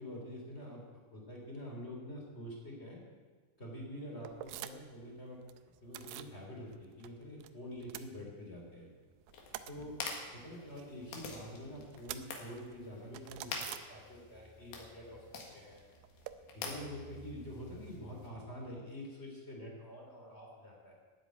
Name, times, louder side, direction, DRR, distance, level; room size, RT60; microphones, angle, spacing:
voice 1, 0.0-3.0 3.6-5.5 5.8-8.9 9.7-10.0 10.4-15.8 16.5-20.9, equal, 15° left, -1 dB, 2.7 m, -46 dB
sound 1, 4.2-5.0 5.3-6.4 6.7-7.5 7.7-8.8 9.1-14.5 14.7-16.3, right 13 dB, 85° right, 2.7 m, -49 dB
sound 2, 9.3-18.3, left 4 dB, 65° left, 3.3 m, -47 dB
13.0 x 8.7 x 9.1 m, 1.5 s
omnidirectional pair, 4.9 m